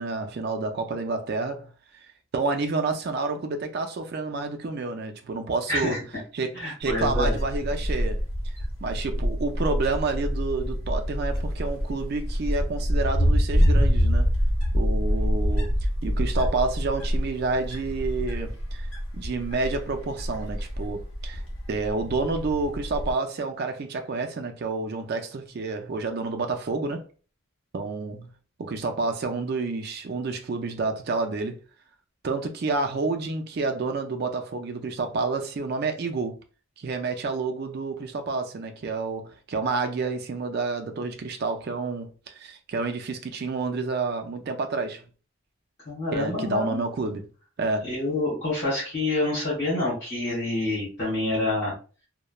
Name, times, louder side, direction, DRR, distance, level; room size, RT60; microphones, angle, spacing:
voice 1, 0.0-1.7 2.3-6.0 6.3-8.2 8.8-14.3 14.7-15.7 16.0-18.9 19.1-21.4 21.7-27.0 27.7-28.3 28.6-31.6 32.2-36.4 36.8-45.0 46.1-47.3 47.6-47.9, right 3 dB, 50° right, 0.4 m, -29 dB
voice 2, 5.7-6.0 6.5-7.4 45.8-46.8 47.8-51.7, left 2 dB, 50° left, 1.3 m, -27 dB
Wind, 6.8-23.1, equal, 65° left, 0.8 m, -26 dB
3.0 x 2.1 x 2.3 m
head